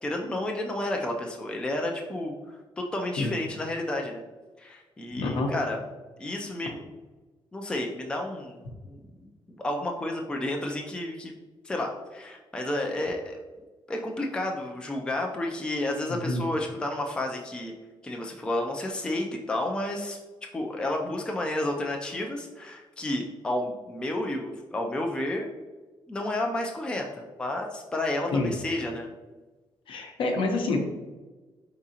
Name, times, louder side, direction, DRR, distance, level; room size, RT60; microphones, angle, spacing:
voice 1, 0.0-4.2 4.6-5.8 6.2-6.8 7.5-11.4 11.6-13.4 13.9-17.7 18.0-20.2 20.5-25.5 26.1-29.1, left 1 dB, 10° left, 1 dB, 0.4 m, -31 dB
voice 2, 5.2-5.5 16.1-16.4 28.3-28.5 29.9-30.8, left 2 dB, 65° left, 2 dB, 0.8 m, -27 dB
4.8 x 3.7 x 2.8 m, 1.2 s
wide cardioid pair, 175°, 9 cm